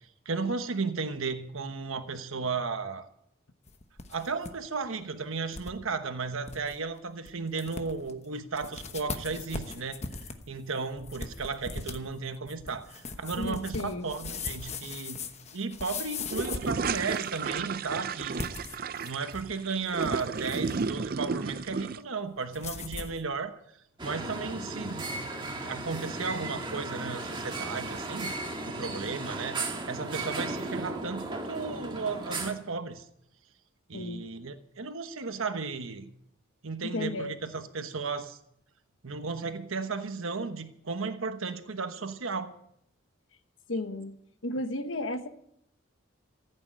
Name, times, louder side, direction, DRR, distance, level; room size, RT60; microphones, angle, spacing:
voice 1, 0.2-3.1 4.1-10.0 10.5-15.2 15.5-18.5 19.0-23.5 24.0-25.3 25.6-29.6 29.9-33.0 33.9-36.1 36.6-38.4 39.0-42.5, right 4 dB, 80° right, 8 dB, 1.1 m, -34 dB
sound 1, 3.7-4.5 4.8-4.9 5.5-5.7 6.1-6.2 6.5-6.8 7.3-7.4 7.6-8.1 8.5-17.4 18.2-19.5 19.8-20.8 22.5-23.2, left 4 dB, 30° left, 1.1 m, -39 dB
voice 2, 13.4-14.1 33.9-34.2 36.8-37.3 43.7-44.2 44.4-45.3, left 2 dB, 70° left, 8 dB, 1.3 m, -33 dB
sound 2, 16.3-22.0, right 5 dB, 45° right, 0.5 m, -33 dB
sound 3, 24.0-32.5, right 2 dB, 20° right, 1.7 m, -36 dB
15.0 x 8.8 x 8.8 m, 0.72 s
head